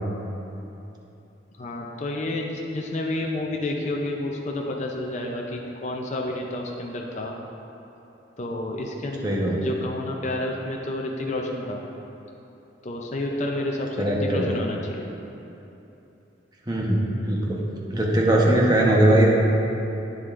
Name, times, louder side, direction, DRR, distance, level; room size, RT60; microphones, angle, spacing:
voice 1, 1.6-7.3 8.4-9.3 9.6-11.8 12.8-15.1, left 1 dB, 40° left, 0 dB, 0.5 m, -30 dB
voice 2, 9.2-9.6 14.0-14.5 16.7-17.6 17.9-19.3, right 1 dB, 20° right, -3 dB, 1.0 m, -20 dB
9.6 x 7.7 x 2.5 m, 3.0 s
head